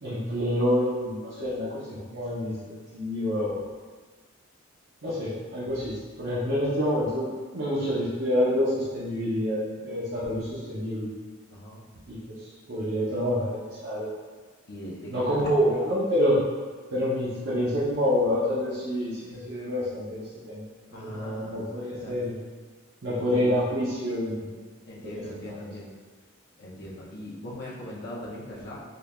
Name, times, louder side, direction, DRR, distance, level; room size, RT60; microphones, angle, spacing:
voice 1, 0.0-3.6 5.0-7.3 7.5-11.1 12.1-14.1 15.1-16.4 16.9-20.6 20.9-22.4 23.0-24.5 25.1-25.7, equal, 55° right, -10 dB, 0.7 m, -27 dB
voice 2, 11.5-11.8 14.7-15.5 20.9-22.2 24.9-26.0 26.6-28.8, left 1 dB, 50° left, -6 dB, 0.6 m, -40 dB
3.8 x 3.3 x 2.3 m, 1.4 s
head